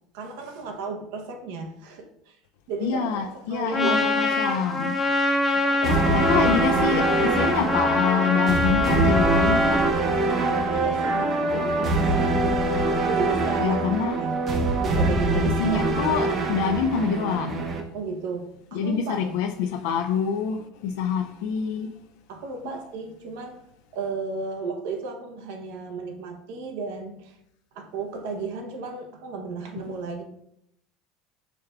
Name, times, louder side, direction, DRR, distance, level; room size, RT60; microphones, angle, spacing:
voice 1, 0.1-2.4 2.7-4.1 4.5-4.6 5.5-6.2 10.5-12.4 13.1-13.8 14.1-14.4 14.8-16.1 17.9-19.4 22.3-23.6 23.9-27.4 27.7-30.2, right 4 dB, 80° right, 0.7 m, -34 dB
voice 2, 2.8-5.0 5.8-9.9 13.6-14.2 15.3-17.6 18.7-21.9 22.6-22.8, left 6 dB, 80° left, 0.3 m, -26 dB
Trumpet, 3.7-9.9, left 1 dB, 10° left, 0.6 m, -24 dB
sound 1, 5.8-17.8, right 2 dB, 35° right, 0.6 m, -24 dB
4.7 x 3.6 x 2.3 m
supercardioid pair, 135°, 0 cm